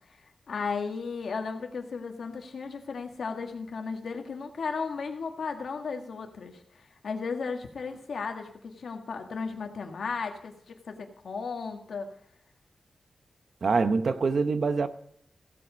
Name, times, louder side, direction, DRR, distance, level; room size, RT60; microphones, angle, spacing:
voice 1, 0.5-12.1, left 5 dB, 70° left, 1.7 m, -35 dB
voice 2, 13.6-14.9, right 4 dB, 50° right, 0.9 m, -25 dB
16.0 x 7.9 x 5.1 m
wide cardioid pair, 180°, 0 cm